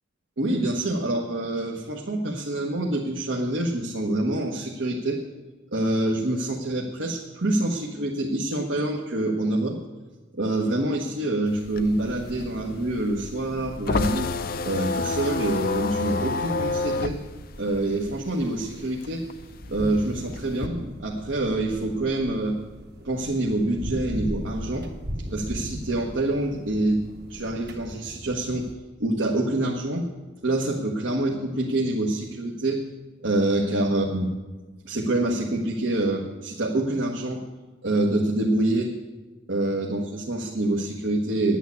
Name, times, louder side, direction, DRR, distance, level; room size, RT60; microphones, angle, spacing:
voice 1, 0.4-5.2 5.7-9.8 10.3-14.3 14.6-17.2 17.6-19.2 19.7-22.6 23.0-24.9 25.3-27.0 27.3-28.7 29.0-30.1 30.4-32.8 33.2-34.3 34.8-37.4 37.8-38.9 39.5-41.6, right 1 dB, 70° right, -1 dB, 1.3 m, -26 dB
sound 1, 11.5-18.6 18.9-20.7, left 3 dB, 50° left, 0.5 m, -28 dB
sound 2, 11.8-28.7, equal, 55° right, 1.4 m, -39 dB
10.5 x 9.3 x 8.3 m, 1.3 s
head